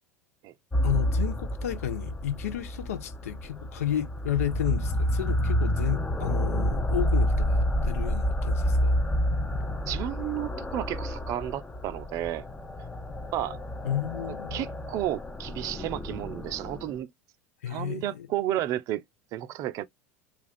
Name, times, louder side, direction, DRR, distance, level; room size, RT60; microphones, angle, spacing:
sound 1, 0.7-17.0, equal, 15° left, 0.5 m, -29 dB
voice 1, 0.8-9.0 13.8-14.7 17.6-18.3, left 10 dB, 70° left, 0.5 m, -32 dB
voice 2, 9.9-12.4 13.3-13.6 14.2-17.1 17.7-19.0 19.3-19.8, right 13 dB, 40° right, 0.4 m, -32 dB
2.4 x 2.3 x 3.3 m
figure-of-eight pair, 80°, 8 cm